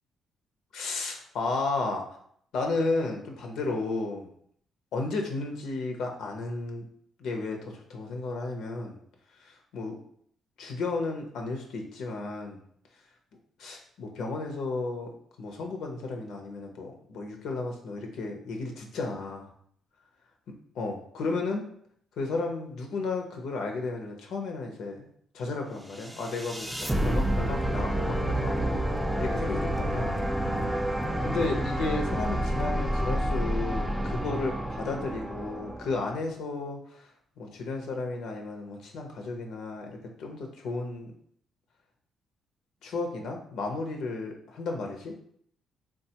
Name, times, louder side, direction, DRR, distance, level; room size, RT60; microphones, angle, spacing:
voice 1, 0.7-2.0 2.5-4.3 4.9-6.8 7.2-9.0 9.4-10.0 10.6-12.6 13.6-15.1 15.4-19.5 20.7-21.7 22.2-25.1 25.3-26.7 27.0-28.8 29.2-30.1 31.2-37.0 37.4-41.1 42.8-45.1, left 3 dB, 80° left, 2 dB, 0.6 m, -33 dB
sound 1, 26.0-36.2, right 1 dB, 5° right, 0.3 m, -29 dB
3.5 x 2.2 x 2.8 m, 0.65 s
cardioid pair, 90°, 0 cm